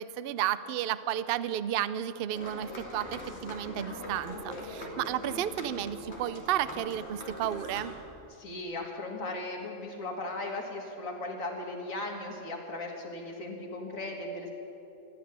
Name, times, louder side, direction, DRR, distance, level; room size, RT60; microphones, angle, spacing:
voice 1, 0.0-7.9, right 11 dB, 60° right, 15 dB, 0.6 m, -32 dB
sound 1, 2.3-7.9, left 1 dB, 55° left, 2.7 m, -42 dB
voice 2, 8.3-14.5, left 2 dB, 80° left, 1 dB, 2.4 m, -37 dB
15.0 x 8.9 x 10.0 m, 3.0 s
omnidirectional pair, 1.4 m